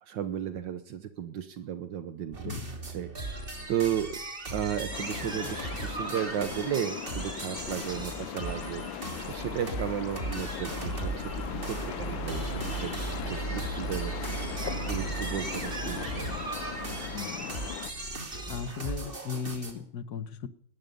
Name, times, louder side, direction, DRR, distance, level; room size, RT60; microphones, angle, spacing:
voice 1, 0.0-2.5 2.8-4.2 4.5-14.4 14.9-16.3, right 10 dB, 70° right, 11 dB, 1.6 m, -34 dB
sound 1, 2.3-19.7, right 2 dB, 30° right, 2.5 m, -38 dB
sound 2, 4.9-17.9, left 11 dB, 80° left, 1.5 m, -39 dB
sound 3, 10.4-17.2, right 3 dB, 25° left, 4.7 m, -37 dB
voice 2, 17.1-17.5 18.5-20.5, left 6 dB, 60° left, 13 dB, 1.5 m, -37 dB
19.0 x 13.0 x 5.4 m, 0.71 s
omnidirectional pair, 2.1 m